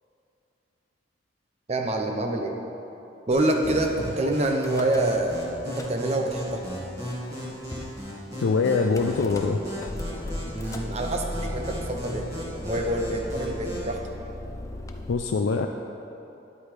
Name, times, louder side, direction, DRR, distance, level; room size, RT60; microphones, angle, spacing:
voice 1, 1.7-2.5 3.3-6.6 10.5-12.3 12.6-14.0, right 1 dB, 35° right, 2 dB, 0.7 m, -26 dB
sound 1, 3.3-13.9, equal, 20° right, 1.9 m, -36 dB
Car / Engine starting / Idling, 4.5-5.3 5.6-6.4 7.0-7.1 7.3-7.4 7.7-8.0 8.9-15.1, left 1 dB, 15° left, 0.4 m, -37 dB
voice 2, 8.4-9.6 15.1-15.7, left 4 dB, 85° left, 4 dB, 0.4 m, -23 dB
11.0 x 8.0 x 3.3 m, 2.9 s
head